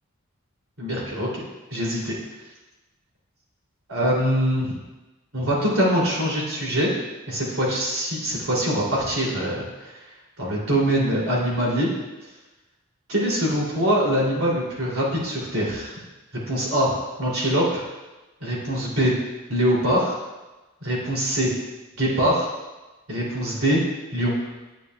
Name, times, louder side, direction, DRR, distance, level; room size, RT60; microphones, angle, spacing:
voice 1, 0.8-1.4 1.7-2.2 3.9-4.7 5.3-6.9 7.3-9.9 10.4-11.9 13.1-15.9 16.5-17.8 18.4-19.1 19.5-20.2 20.8-21.5 22.0-22.5 23.1-23.8 24.1-24.3, equal, 80° right, -4 dB, 2.8 m, -23 dB
9.6 x 9.4 x 2.3 m, 1.1 s
head